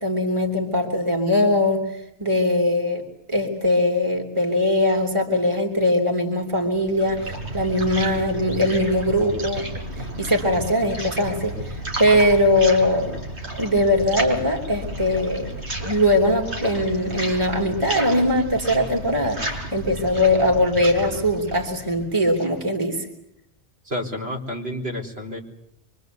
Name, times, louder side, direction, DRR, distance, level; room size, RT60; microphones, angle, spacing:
voice 1, 0.0-1.8 2.2-9.7 10.0-13.1 13.6-15.5 15.8-23.1, left 1 dB, 25° right, 2 dB, 3.3 m, -21 dB
sound 1, 6.6-22.6, right 1 dB, 80° right, 5.5 m, -32 dB
voice 2, 23.8-25.4, left 1 dB, 60° right, -1 dB, 4.5 m, -30 dB
25.5 x 24.5 x 8.1 m, 0.77 s
omnidirectional pair, 1.1 m